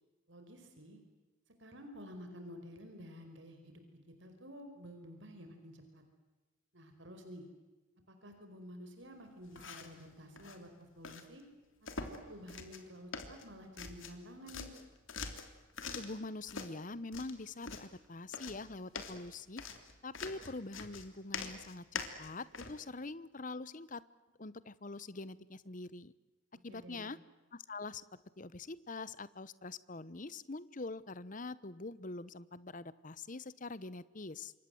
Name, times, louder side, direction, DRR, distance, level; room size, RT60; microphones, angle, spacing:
voice 1, 0.3-1.0 1.6-6.0 6.7-7.4 8.1-11.4 11.8-14.7 26.7-27.1, equal, 65° right, 5 dB, 4.9 m, -51 dB
sound 1, 9.4-10.0 10.4-10.6 11.0-11.2 11.9-12.2 12.5-12.9 13.1-14.2 14.5-16.2 16.5-16.7 17.1-17.9 18.3-22.8, left 5 dB, 80° left, 3.3 m, -44 dB
voice 2, 15.9-19.6 20.0-24.0 24.4-26.1 26.6-27.2 27.5-28.0 28.4-34.5, left 3 dB, 40° left, 17 dB, 1.0 m, -44 dB
28.0 x 25.0 x 7.9 m, 1.2 s
head